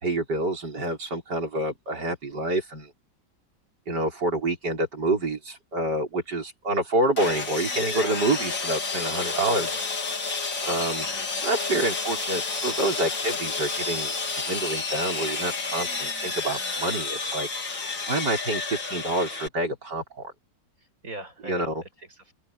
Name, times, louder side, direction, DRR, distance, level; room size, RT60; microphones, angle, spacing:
voice 1, 0.0-2.9 3.9-9.7 10.6-11.1 11.4-14.1 14.4-17.5 18.1-20.0 21.4-21.8, right 2 dB, 70° right, 6.2 m, -27 dB
Sawing, 7.2-19.5, left 4 dB, 90° left, 3.9 m, -30 dB
voice 2, 9.2-9.9 20.8-22.3, right 1 dB, 50° right, 8.5 m, -42 dB
open air
omnidirectional pair, 1.9 m